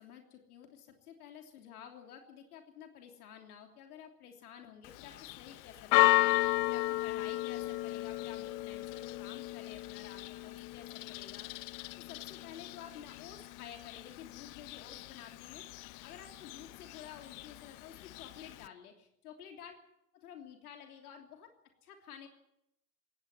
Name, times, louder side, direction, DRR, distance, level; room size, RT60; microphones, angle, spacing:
voice 1, 0.0-11.5 12.0-19.7 20.1-21.5 21.8-22.3, left 8 dB, 75° left, 4 dB, 3.2 m, -51 dB
Church bell, 4.8-18.7, left 19 dB, 45° left, 0.9 m, -34 dB
18.5 x 16.0 x 9.6 m, 0.81 s
hypercardioid pair, 100°, 46 cm